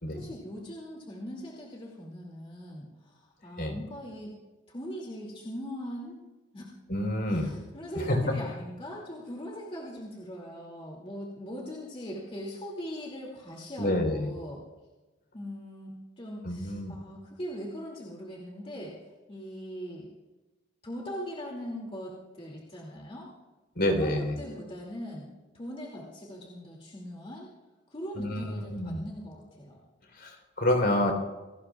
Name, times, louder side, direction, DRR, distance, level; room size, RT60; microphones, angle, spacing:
voice 1, 0.1-4.4 4.7-6.2 6.5-6.6 7.3-14.6 15.3-18.9 19.3-20.1 20.8-23.3 23.9-25.3 25.5-27.5 27.9-29.8, equal, 30° left, -3 dB, 2.5 m, -40 dB
voice 2, 6.9-7.5 8.1-8.2 13.8-14.3 16.4-16.9 23.8-24.3 28.2-29.0 30.2-31.1, left 1 dB, 55° left, 3 dB, 3.7 m, -28 dB
27.5 x 18.5 x 2.4 m, 1.1 s
head